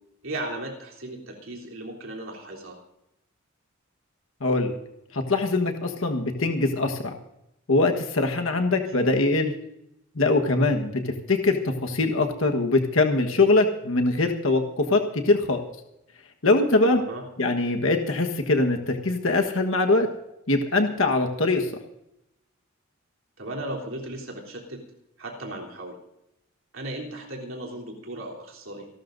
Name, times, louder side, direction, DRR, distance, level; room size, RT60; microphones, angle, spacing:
voice 1, 0.2-2.8 8.7-9.1 10.5-10.8 16.9-17.3 23.4-24.8 25.2-26.0 26.7-28.9, right 1 dB, 70° right, -1 dB, 3.5 m, -36 dB
voice 2, 4.4-4.7 5.1-7.0 7.7-9.5 10.1-15.6 16.4-17.0 17.4-20.1 20.5-21.7, left 2 dB, 70° left, 4 dB, 1.4 m, -22 dB
28.5 x 12.5 x 2.6 m, 0.84 s
head